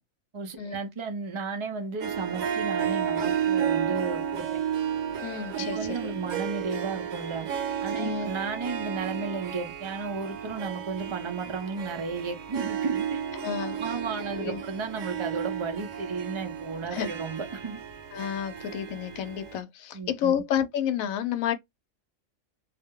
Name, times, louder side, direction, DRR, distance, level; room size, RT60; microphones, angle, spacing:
voice 1, 0.3-4.6 5.5-7.5 7.8-13.2 13.8-17.8 19.9-20.4, right 4 dB, 45° right, 0.4 m, -34 dB
Harp, 2.0-19.6, right 8 dB, 75° right, 1.1 m, -32 dB
voice 2, 5.2-6.0 8.0-8.3 13.4-13.8 14.3-14.6 16.9-17.1 18.1-21.5, left 9 dB, 80° left, 1.0 m, -30 dB
2.5 x 2.1 x 3.5 m
omnidirectional pair, 1.4 m